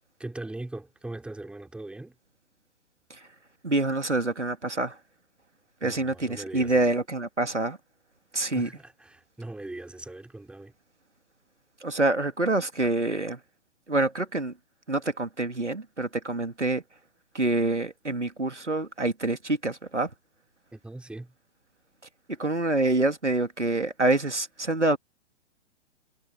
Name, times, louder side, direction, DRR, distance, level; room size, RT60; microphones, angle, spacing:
voice 1, 0.2-2.2 5.8-6.9 8.3-10.7 20.7-21.3, right 2 dB, 5° right, 3.3 m, -40 dB
voice 2, 3.6-5.0 5.8-7.8 8.3-8.7 11.8-13.4 13.9-14.5 14.9-16.8 17.3-20.1 22.4-25.0, right 2 dB, 85° right, 2.7 m, -26 dB
figure-of-eight pair, 115°, 34 cm